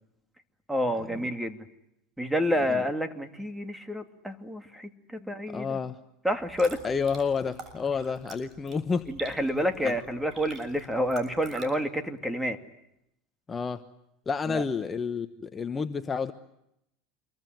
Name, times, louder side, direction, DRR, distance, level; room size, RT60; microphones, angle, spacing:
voice 1, 0.7-1.6 2.2-5.8 6.2-6.8 9.1-12.6 14.5-14.6, equal, 5° right, 8 dB, 2.5 m, -29 dB
voice 2, 5.2-6.0 6.8-9.1 9.8-10.0 13.5-13.8 14.3-16.3, left 5 dB, 20° left, 8 dB, 1.1 m, -30 dB
sound 1, 6.3-11.7, right 5 dB, 35° right, 6.8 m, -46 dB
27.5 x 23.0 x 9.3 m, 0.82 s
supercardioid pair, 125°, 0 cm